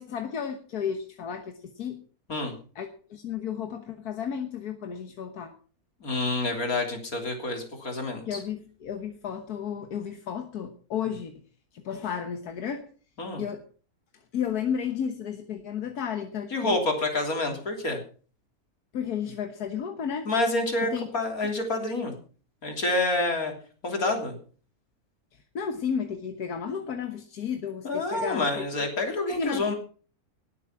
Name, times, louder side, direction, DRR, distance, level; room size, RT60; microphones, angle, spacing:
voice 1, 0.0-2.0 2.8-5.5 8.3-11.3 11.7-12.8 13.4-13.6 14.3-16.8 18.9-20.3 20.8-21.1 25.6-28.7 29.4-29.7, left 7 dB, 85° left, 6 dB, 1.7 m, -33 dB
voice 2, 6.0-8.4 13.2-13.4 16.5-18.0 20.3-22.1 22.6-23.5 23.8-24.4 27.8-29.7, left 2 dB, 65° left, 3 dB, 3.7 m, -28 dB
18.5 x 8.3 x 5.9 m, 0.41 s
omnidirectional pair, 1.6 m